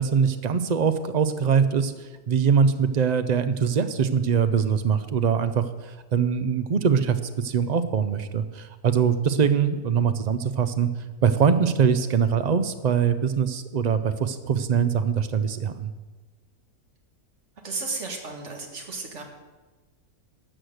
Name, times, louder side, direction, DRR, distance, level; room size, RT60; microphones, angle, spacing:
voice 1, 0.0-10.9 11.2-15.9, right 6 dB, 85° right, 10 dB, 0.3 m, -23 dB
voice 2, 17.6-19.2, right 3 dB, 50° right, 2 dB, 2.0 m, -33 dB
12.5 x 6.5 x 7.9 m, 1.2 s
omnidirectional pair, 1.6 m